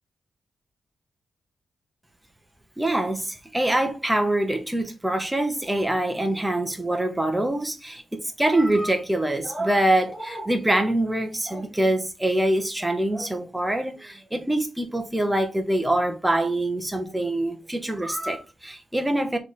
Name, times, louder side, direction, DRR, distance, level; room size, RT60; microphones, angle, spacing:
voice 1, 2.8-19.4, right 1 dB, 10° right, 0.8 m, -24 dB
3.4 x 3.2 x 4.1 m
wide cardioid pair, 120°, 0 cm